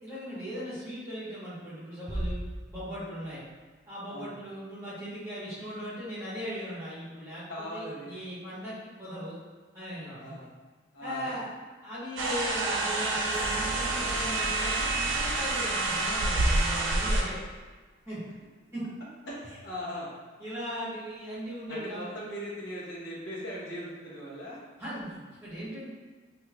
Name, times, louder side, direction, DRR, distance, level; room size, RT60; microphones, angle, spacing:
voice 1, 0.0-2.4 2.7-3.4 3.9-9.4 9.7-10.3 11.0-11.4 11.8-17.4 18.1-18.2 18.7-18.8 20.4-22.1 24.8-25.9, equal, 15° right, -10 dB, 1.3 m, -38 dB
sound 1, 2.1-3.5, right 1 dB, ahead, 0.5 m, -36 dB
voice 2, 7.5-8.2 10.2-10.5 10.9-11.3 19.3-20.1 21.7-24.6, equal, 70° left, -8 dB, 1.0 m, -39 dB
sound 2, 12.2-17.2, right 2 dB, 90° right, 0.6 m, -28 dB
sound 3, 13.3-17.6, equal, 30° right, 0.8 m, -41 dB
4.3 x 2.7 x 2.4 m, 1.3 s
head